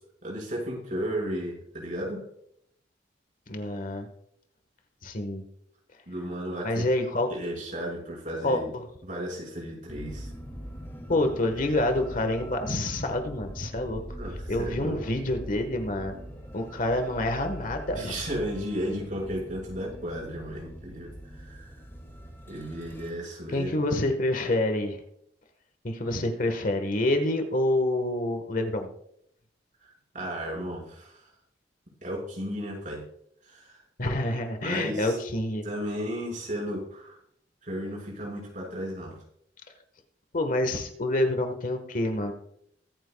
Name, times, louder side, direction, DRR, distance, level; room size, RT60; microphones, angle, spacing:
voice 1, 0.2-2.2 6.1-6.9 7.3-8.7 9.0-10.3 14.2-15.0 18.0-21.7 22.5-23.7 30.1-31.3 32.0-33.0 33.5-33.8 34.6-35.2 35.6-37.2 37.6-39.2, equal, 45° right, -3 dB, 5.6 m, -34 dB
voice 2, 3.5-4.1 5.0-5.4 6.6-7.3 8.4-8.8 11.1-14.0 14.5-16.2 16.5-18.2 23.5-25.0 25.8-28.9 34.0-35.6 40.3-42.3, left 1 dB, 50° left, 6 dB, 1.4 m, -27 dB
sound 1, 9.9-23.1, equal, 15° left, 2.4 m, -42 dB
22.5 x 9.2 x 2.3 m, 0.71 s
head